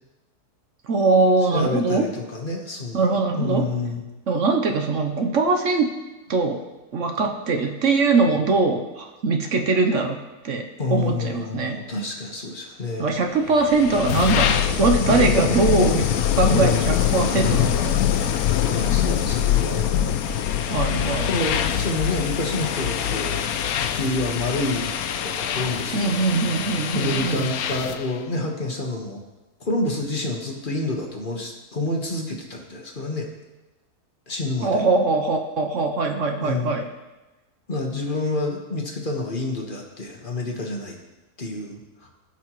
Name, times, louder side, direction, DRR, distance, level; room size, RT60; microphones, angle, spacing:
voice 1, 0.9-2.1 2.9-3.7 4.3-5.9 6.3-6.6 6.9-10.2 10.4-11.8 13.0-16.0 16.4-18.0 20.7-21.3 25.9-27.5 34.6-36.8, right 3 dB, 60° right, 4 dB, 1.0 m, -21 dB
voice 2, 1.5-4.0 10.8-13.1 15.1-15.9 16.5-16.9 18.7-20.0 21.3-23.5 23.8-24.9 25.2-26.2 26.9-29.2 29.6-33.3 34.3-34.7 36.4-36.8 37.7-40.9 41.4-41.8, left 2 dB, 35° left, 1 dB, 1.3 m, -28 dB
sound 1, 13.5-28.1, left 10 dB, 70° left, 1.1 m, -24 dB
16.5 x 6.0 x 3.0 m, 1.1 s
omnidirectional pair, 1.6 m